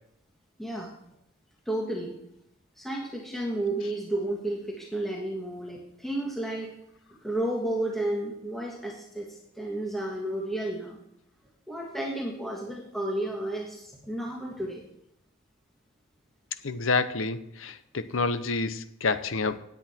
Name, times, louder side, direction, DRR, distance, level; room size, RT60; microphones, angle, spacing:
voice 1, 0.6-0.9 1.6-2.1 2.8-6.7 7.2-9.3 9.5-11.0 11.7-14.8, right 1 dB, ahead, 1.5 m, -32 dB
voice 2, 16.6-19.6, left 3 dB, 80° left, 0.8 m, -28 dB
17.0 x 8.5 x 4.4 m
head